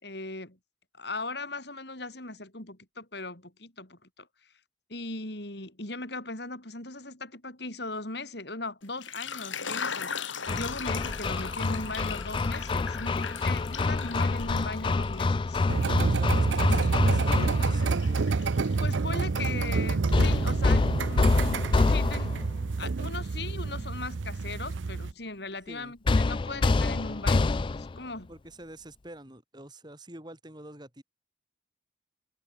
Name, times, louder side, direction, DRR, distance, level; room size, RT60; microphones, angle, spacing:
voice 1, 0.0-0.6 1.0-4.5 4.9-15.6 18.8-22.4 22.8-28.3, left 2 dB, 55° left, 4.4 m, -39 dB
sound 1, 8.8-15.3 15.6-19.8 20.1-20.9, left 6 dB, 80° left, 4.2 m, -39 dB
Hammer, 10.5-17.9 20.1-22.5 26.1-28.0, left 3 dB, 25° left, 0.3 m, -27 dB
voice 2, 15.7-18.2 25.7-25.9 28.3-31.0, right 1 dB, 20° right, 3.5 m, -46 dB
sound 2, 15.7-25.1, right 4 dB, 75° right, 0.6 m, -28 dB
head